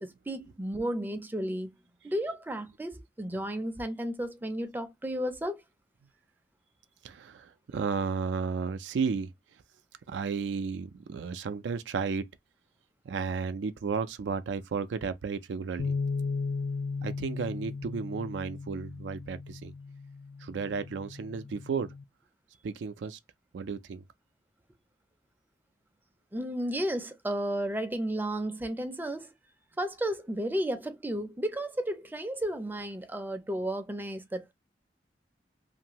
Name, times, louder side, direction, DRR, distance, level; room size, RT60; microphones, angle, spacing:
voice 1, 0.0-1.7 2.0-5.6 26.3-29.3 29.8-34.5, right 1 dB, 10° right, 0.5 m, -33 dB
voice 2, 7.0-9.3 10.1-12.2 13.1-15.9 17.0-19.7 20.4-21.9 22.6-23.2 23.5-24.0, right 5 dB, 85° right, 0.4 m, -33 dB
sound 1, 15.8-22.0, left 4 dB, 60° left, 0.4 m, -36 dB
2.6 x 2.5 x 2.9 m
head